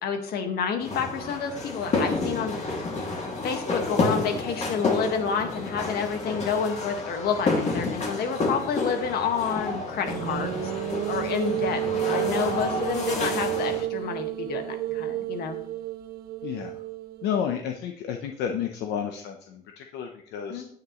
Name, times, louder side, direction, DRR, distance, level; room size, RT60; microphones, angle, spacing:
voice 1, 0.0-2.6 3.0-3.1 3.4-15.6 20.5-20.7, left 6 dB, 70° left, 5 dB, 1.8 m, -29 dB
sound 1, 0.8-13.8, left 3 dB, 40° left, 2.6 m, -30 dB
sound 2, 10.1-17.5, right 13 dB, 65° right, 0.6 m, -31 dB
voice 2, 16.4-16.7 17.2-20.6, left 8 dB, 85° left, 4 dB, 0.9 m, -31 dB
9.7 x 9.4 x 3.2 m, 0.64 s
cardioid pair, 110°, 17 cm